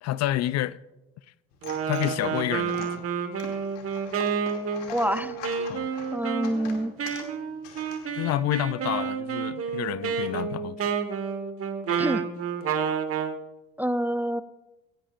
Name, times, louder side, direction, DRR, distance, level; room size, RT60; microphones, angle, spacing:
voice 1, 0.0-0.8 1.9-3.0 5.7-5.9 8.1-10.8, left 14 dB, 50° left, 0.5 m, -29 dB
sound 1, 1.5-8.4, left 6 dB, 85° left, 2.5 m, -44 dB
Wind instrument woodwind instrument, 1.6-13.4, right 6 dB, 40° right, 1.5 m, -30 dB
voice 2, 4.9-5.7 6.1-6.9 12.0-12.3 13.8-14.4, right 1 dB, 5° right, 0.5 m, -27 dB
18.0 x 17.0 x 2.5 m
supercardioid pair, 85°, 34 cm